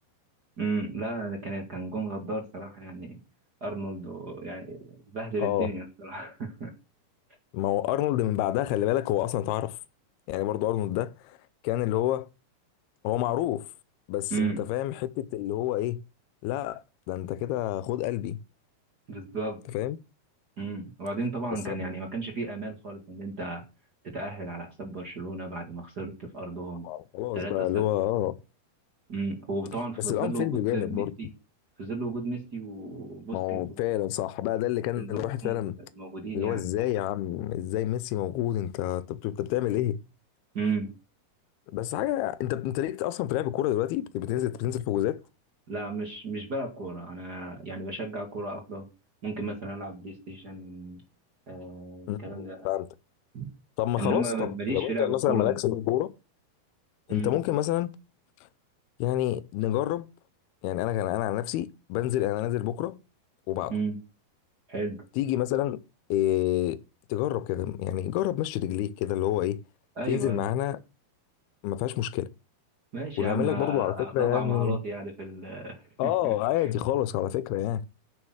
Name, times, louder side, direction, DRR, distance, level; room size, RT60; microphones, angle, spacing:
voice 1, 0.6-3.2 3.6-6.7 14.3-14.6 19.1-19.6 20.6-23.6 24.0-26.9 27.3-27.9 29.1-31.3 31.8-33.8 35.0-35.6 36.0-36.6 40.5-40.9 45.7-48.8 49.2-51.0 51.5-52.7 53.3-53.5 54.0-55.6 57.1-57.3 63.7-64.0 64.7-65.0 70.0-70.5 72.9-76.7, right 3 dB, 40° right, 1.6 m, -34 dB
voice 2, 5.4-5.7 7.5-9.8 10.3-11.4 11.6-12.3 13.0-13.7 14.1-16.0 16.4-18.4 19.7-20.0 21.7-21.9 26.8-28.4 30.1-31.1 33.3-35.8 36.3-40.0 41.7-45.2 52.1-52.9 53.8-56.1 57.1-57.9 59.0-60.1 60.6-63.0 63.5-63.7 65.2-65.8 66.1-66.8 67.1-69.6 70.1-70.8 71.6-72.3 73.2-74.8 76.0-77.8, left 13 dB, 90° left, 2.7 m, -28 dB
9.6 x 7.0 x 6.3 m
omnidirectional pair, 4.4 m